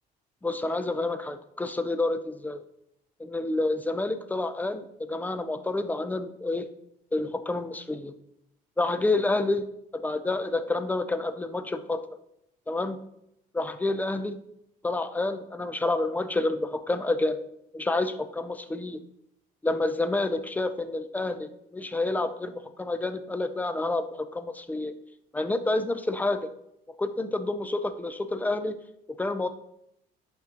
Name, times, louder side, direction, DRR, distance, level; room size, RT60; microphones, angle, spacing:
voice 1, 0.4-2.6 3.2-6.7 7.1-8.1 8.8-9.6 9.9-12.0 12.7-13.0 13.5-14.4 14.8-17.4 17.7-19.0 19.6-24.9 25.3-26.5 27.0-28.8 29.2-29.5, left 2 dB, 10° left, 10 dB, 0.5 m, -29 dB
11.0 x 3.6 x 2.9 m, 0.78 s
cardioid pair, 110°, 17 cm